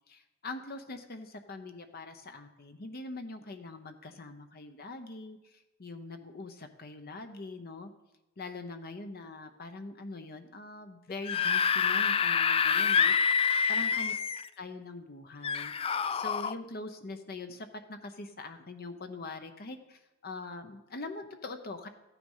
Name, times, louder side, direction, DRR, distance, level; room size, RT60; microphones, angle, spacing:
voice 1, 0.1-7.9 8.4-14.1 14.6-21.9, left 2 dB, 50° left, 7 dB, 0.8 m, -43 dB
Screaming / Screech, 11.1-14.5 15.4-16.5, left 6 dB, 25° left, 0.3 m, -27 dB
14.0 x 9.4 x 5.5 m, 1.0 s
head